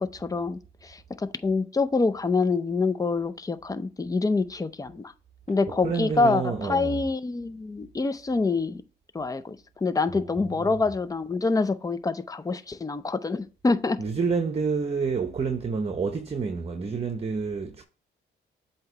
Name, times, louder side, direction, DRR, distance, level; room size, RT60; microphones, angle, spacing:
voice 1, 0.0-5.1 5.5-8.8 9.1-14.0, left 3 dB, 15° left, 0.6 m, -26 dB
voice 2, 5.7-7.0 10.5-10.8 14.0-17.8, right 5 dB, 30° right, 0.9 m, -28 dB
7.7 x 2.9 x 4.9 m
cardioid pair, 90°, 20 cm